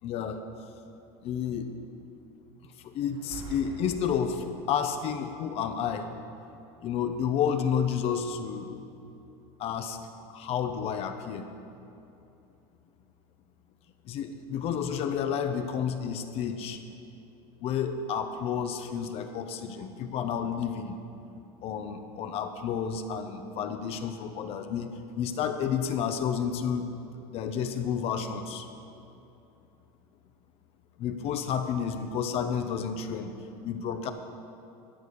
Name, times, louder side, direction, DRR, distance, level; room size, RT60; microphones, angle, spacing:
voice 1, 0.0-0.4 1.2-1.7 2.8-6.1 6.8-8.7 9.6-10.0 10.3-11.5 14.1-16.8 17.6-21.0 21.6-24.9 25.1-26.9 27.3-28.7 31.0-33.3 33.6-34.1, left 7 dB, 50° left, 7 dB, 0.8 m, -30 dB
sound 1, 3.1-4.7, right 3 dB, 35° right, 1.3 m, -45 dB
12.5 x 4.9 x 8.4 m, 2.8 s
supercardioid pair, 120°, 13 cm